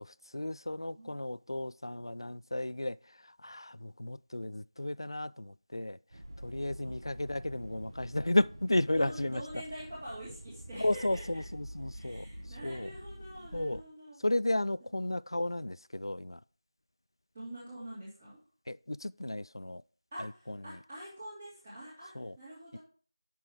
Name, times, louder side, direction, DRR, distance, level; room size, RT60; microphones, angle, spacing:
voice 1, 0.0-3.0 3.2-6.0 6.4-9.4 10.8-12.3 12.6-12.9 13.5-13.8 14.2-16.4 18.7-19.8 20.2-20.8 22.2-22.4 22.7-22.8, left 1 dB, 65° left, 0.4 m, -33 dB
sound 1, 6.1-13.8, equal, 55° right, 1.4 m, -47 dB
voice 2, 8.9-11.4 11.9-14.2 17.3-18.4 20.1-22.8, right 1 dB, 15° right, 2.5 m, -45 dB
9.0 x 6.2 x 4.5 m
figure-of-eight pair, 170°, 3 cm